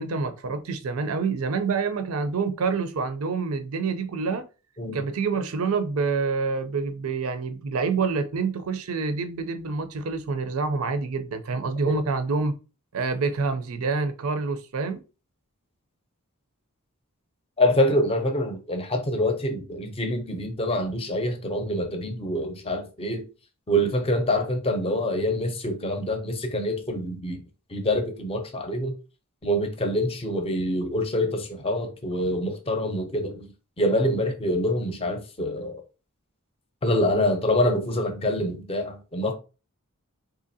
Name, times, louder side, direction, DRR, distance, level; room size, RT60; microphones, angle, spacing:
voice 1, 0.0-4.4 4.9-12.5 12.9-15.0, right 4 dB, 75° right, 0.5 m, -27 dB
voice 2, 17.6-23.3 23.7-27.4 27.7-29.0 29.4-33.5 33.8-35.8 36.8-39.3, left 1 dB, 25° left, 0.6 m, -25 dB
3.7 x 2.9 x 2.7 m
head